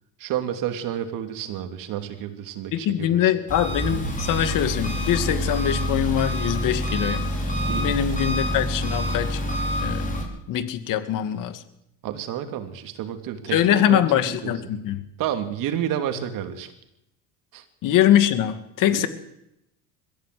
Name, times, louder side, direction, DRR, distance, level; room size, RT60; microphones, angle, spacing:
voice 1, 0.2-3.3 7.7-8.0 12.0-14.0 14.4-14.5 15.2-16.7 17.5-17.6 18.9-19.1, right 10 dB, 60° right, 7 dB, 3.1 m, -30 dB
voice 2, 2.7-7.3 7.7-9.4 9.8-10.2 10.5-11.6 13.5-15.0 17.8-19.1, left 11 dB, 55° left, 10 dB, 2.4 m, -23 dB
Engine, 3.5-10.2, equal, 20° left, 6.1 m, -26 dB
22.0 x 15.5 x 7.8 m, 0.83 s
supercardioid pair, 95°, 38 cm